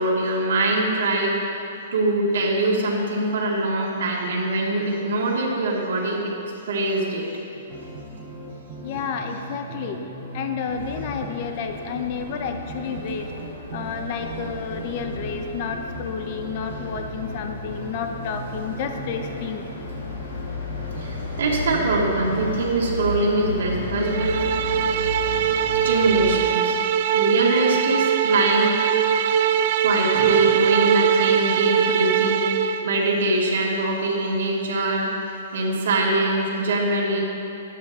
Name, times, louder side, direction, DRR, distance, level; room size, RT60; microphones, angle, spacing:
voice 1, 0.0-1.6 1.9-6.2 6.7-7.3 21.0-24.9 25.8-26.8 27.1-29.1 29.8-37.2, right 2 dB, 75° right, -4 dB, 2.1 m, -23 dB
sound 1, 7.5-22.7, right 1 dB, ahead, 2.6 m, -38 dB
voice 2, 8.8-10.0 10.3-13.3 13.7-19.6, left 6 dB, 40° left, 5 dB, 0.7 m, -30 dB
sound 2, 10.7-26.4, left 2 dB, 80° left, 2.4 m, -34 dB
sound 3, 24.0-32.8, right 8 dB, 45° right, 0.5 m, -21 dB
12.0 x 9.3 x 4.2 m, 2.9 s
hypercardioid pair, 155°, 0 cm